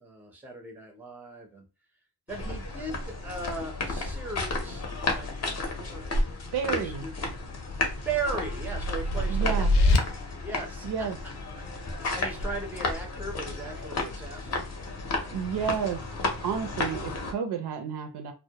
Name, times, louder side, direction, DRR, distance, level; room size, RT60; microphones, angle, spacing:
voice 1, 0.0-1.7 2.3-6.3 6.7-7.1 7.9-10.1 10.4-10.9 12.0-14.6 15.1-15.3, right 3 dB, 5° right, 0.5 m, -37 dB
sound 1, 2.3-17.3, left 2 dB, 40° left, 0.6 m, -33 dB
voice 2, 6.5-7.1 9.3-9.7 10.8-11.2 15.3-16.0 16.4-18.3, right 7 dB, 75° right, 0.6 m, -31 dB
sound 2, 7.2-10.0, left 1 dB, 85° left, 0.6 m, -26 dB
2.2 x 2.1 x 2.7 m
wide cardioid pair, 145°, 40 cm